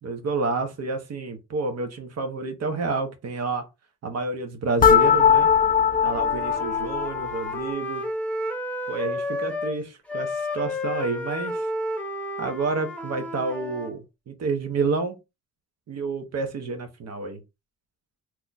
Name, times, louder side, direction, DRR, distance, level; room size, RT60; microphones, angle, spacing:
voice 1, 0.0-3.7 4.0-5.5 6.0-8.0 8.9-11.7 12.4-15.2 15.9-17.4, right 3 dB, 55° right, 1.1 m, -29 dB
sound 1, 4.8-7.7, left 7 dB, 30° left, 0.4 m, -20 dB
Wind instrument woodwind instrument, 6.0-9.8 10.1-13.9, left 1 dB, 5° left, 0.9 m, -31 dB
2.9 x 2.3 x 4.0 m
cardioid pair, 90°, 30 cm